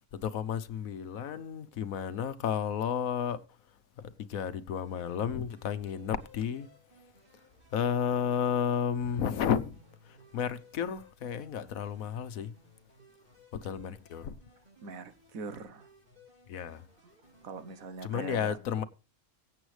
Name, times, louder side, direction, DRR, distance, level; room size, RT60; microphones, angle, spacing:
voice 1, 0.1-3.4 4.0-6.7 7.7-9.7 10.3-12.5 13.6-14.3 16.5-16.8 18.0-18.8, left 8 dB, 75° left, 1.2 m, -32 dB
sound 1, 4.8-17.8, left 1 dB, 35° right, 7.3 m, -60 dB
voice 2, 14.8-15.9 17.4-18.6, right 4 dB, 70° right, 1.4 m, -42 dB
23.0 x 8.0 x 3.2 m
omnidirectional pair, 1.5 m